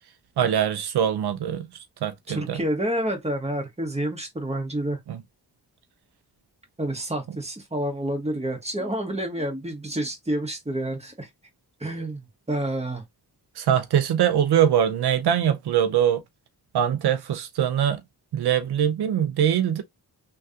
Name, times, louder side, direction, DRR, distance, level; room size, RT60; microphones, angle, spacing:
voice 1, 0.4-1.7 2.0-2.6 5.1-5.2 13.6-16.2 16.7-18.0 18.3-19.8, right 9 dB, 80° right, 0.5 m, -22 dB
voice 2, 2.3-5.0 6.8-11.3 11.8-13.0, right 1 dB, 15° right, 1.2 m, -29 dB
3.2 x 2.4 x 2.7 m
cardioid pair, 60°, 39 cm